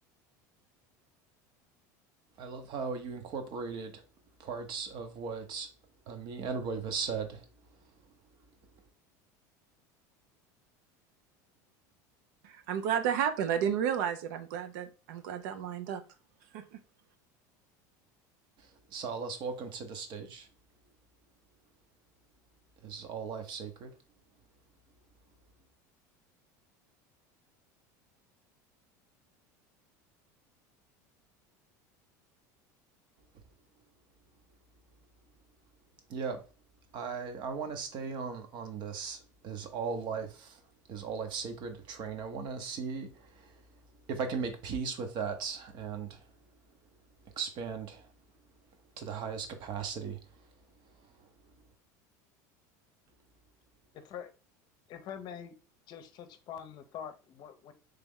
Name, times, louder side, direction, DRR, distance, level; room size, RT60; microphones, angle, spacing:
voice 1, 2.4-4.0 4.4-5.7 6.1-7.5 18.9-20.5 22.8-23.9 36.1-36.4 36.9-40.6 40.9-43.5 44.1-46.2 47.4-48.1 49.0-50.2, right 5 dB, 55° right, 0.9 m, -37 dB
voice 2, 12.4-16.0 16.5-16.6, right 8 dB, 75° right, 0.6 m, -32 dB
voice 3, 53.9-54.3 54.9-55.5 55.9-57.7, left 8 dB, 50° left, 0.7 m, -44 dB
3.3 x 3.0 x 3.7 m
supercardioid pair, 105°, 10 cm